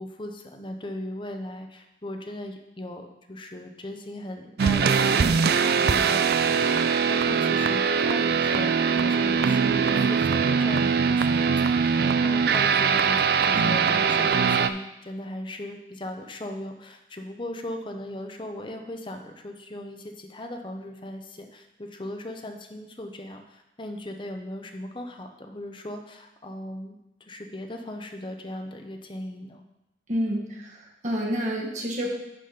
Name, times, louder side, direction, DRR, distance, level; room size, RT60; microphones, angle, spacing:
voice 1, 0.0-8.7 9.0-29.6, left 1 dB, 30° left, 4 dB, 0.8 m, -38 dB
sound 1, 4.6-14.7, right 6 dB, 60° right, 0.4 m, -22 dB
voice 2, 30.1-32.1, equal, 45° right, -1 dB, 1.6 m, -29 dB
11.0 x 4.2 x 5.0 m, 0.91 s
head